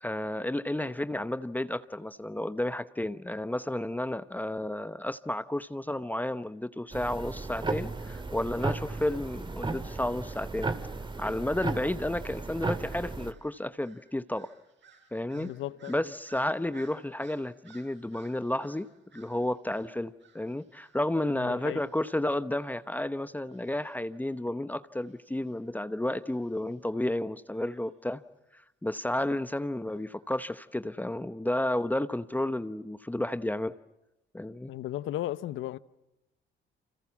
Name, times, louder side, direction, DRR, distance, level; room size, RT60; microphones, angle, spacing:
voice 1, 0.0-10.7 11.2-14.5 15.1-15.5 15.9-18.9 19.1-28.2 28.5-33.7 34.3-34.7, left 1 dB, 10° left, 0.9 m, -32 dB
sound 1, 6.9-13.3, right 3 dB, 25° right, 2.1 m, -35 dB
sound 2, 13.2-21.2 21.6-22.9 23.4-25.7 26.2-27.0 27.4-27.9 29.9-30.5, right 6 dB, 65° right, 8.0 m, -61 dB
voice 2, 15.3-15.9 21.3-21.8 34.7-35.8, left 14 dB, 85° left, 0.9 m, -35 dB
30.0 x 26.0 x 7.3 m
cardioid pair, 90°, 20 cm